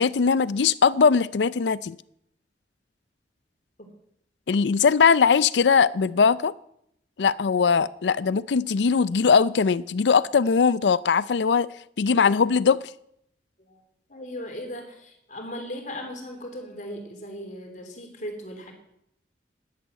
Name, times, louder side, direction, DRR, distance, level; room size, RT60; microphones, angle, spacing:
voice 1, 0.0-2.0 4.5-6.5 7.2-12.9, left 5 dB, 85° left, 0.5 m, -20 dB
voice 2, 14.1-18.7, equal, 45° left, 3.5 m, -37 dB
11.0 x 11.0 x 9.0 m
head